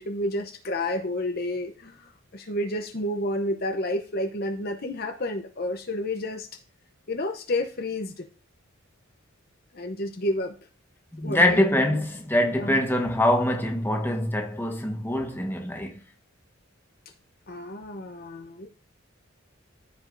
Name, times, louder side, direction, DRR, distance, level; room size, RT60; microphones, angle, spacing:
voice 1, 0.0-6.5 7.1-8.2 9.7-10.5 11.2-11.6 12.6-12.8 17.5-18.7, left 1 dB, 45° left, 0.8 m, -30 dB
voice 2, 11.1-16.0, left 1 dB, 10° left, 1.2 m, -24 dB
14.5 x 5.2 x 2.6 m
head